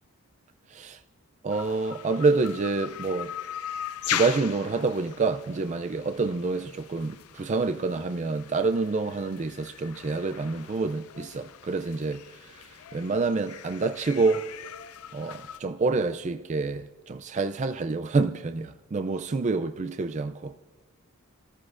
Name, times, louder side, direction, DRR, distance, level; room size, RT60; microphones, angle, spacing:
voice 1, 0.7-1.0 1.4-3.3 4.1-14.5 15.1-20.6, right 3 dB, 30° right, 0.3 m, -27 dB
sound 1, 1.5-15.6, left 10 dB, 80° left, 0.5 m, -39 dB
29.0 x 14.0 x 2.5 m
head